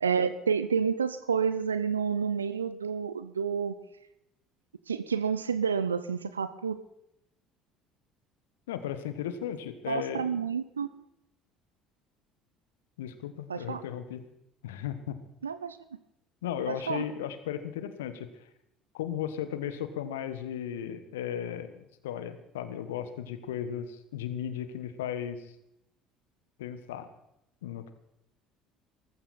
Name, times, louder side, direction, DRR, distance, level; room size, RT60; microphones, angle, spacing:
voice 1, 0.0-3.7 4.9-6.8 9.9-10.9 13.5-13.8 15.4-15.8 16.7-17.1, right 6 dB, 85° right, 14 dB, 0.6 m, -29 dB
voice 2, 8.7-10.5 13.0-14.2 14.6-15.2 16.4-18.3 18.9-25.5 26.6-27.1 27.6-27.9, left 9 dB, 75° left, 11 dB, 1.3 m, -36 dB
18.0 x 15.0 x 4.3 m, 0.83 s
figure-of-eight pair, 60°, 0 cm